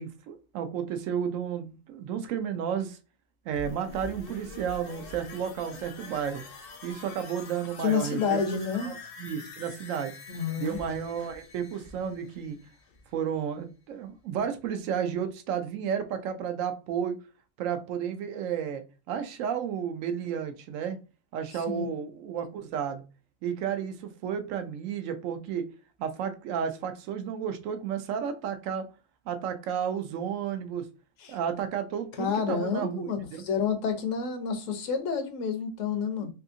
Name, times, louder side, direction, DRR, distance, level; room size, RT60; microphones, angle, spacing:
voice 1, 0.0-3.0 3.5-6.4 6.8-10.1 10.6-12.6 13.1-17.2 17.6-21.0 21.3-23.0 23.4-25.6 26.0-28.9 29.3-30.8 31.3-33.4 36.2-36.3, right 8 dB, 85° right, 1.0 m, -32 dB
sound 1, 3.5-13.2 13.6-13.7, left 3 dB, 60° left, 0.7 m, -46 dB
voice 2, 7.8-8.9 10.3-10.8 21.7-21.9 31.2-31.4 32.2-36.3, left 6 dB, 80° left, 1.0 m, -29 dB
3.4 x 2.7 x 2.5 m
omnidirectional pair, 1.3 m